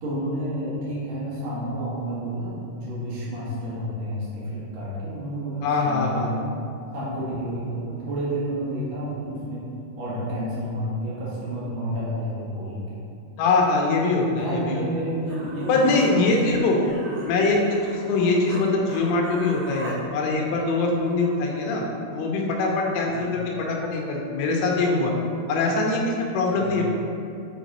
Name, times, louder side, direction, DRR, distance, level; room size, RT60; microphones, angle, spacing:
voice 1, 0.0-6.6 6.9-9.7 10.0-13.0 14.3-16.6 23.0-23.2 26.5-26.7, equal, 80° right, -8 dB, 1.5 m, -30 dB
voice 2, 5.6-6.3 13.4-14.8 15.7-16.8 17.3-21.8 22.1-25.1 25.5-26.9, left 3 dB, 85° left, -1 dB, 3.2 m, -23 dB
Human voice, 15.3-18.6 18.9-20.0, right 2 dB, 65° right, 2.4 m, -37 dB
8.4 x 3.4 x 4.1 m, 2.5 s
omnidirectional pair, 5.6 m